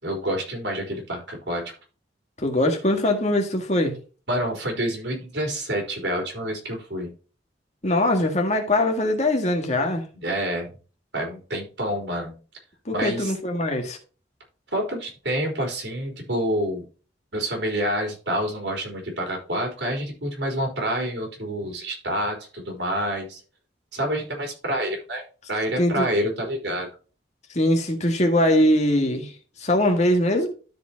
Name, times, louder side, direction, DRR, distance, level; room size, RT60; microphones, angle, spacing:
voice 1, 0.0-1.7 4.3-7.1 10.1-10.7 11.1-12.4 12.9-13.3 14.7-16.8 17.3-23.4 23.9-26.9, equal, 65° right, 3.8 m, -28 dB
voice 2, 2.4-4.0 7.8-10.0 12.9-14.0 25.8-26.1 27.5-29.3 29.6-30.5, left 1 dB, 35° left, 1.9 m, -22 dB
13.0 x 5.1 x 2.9 m
head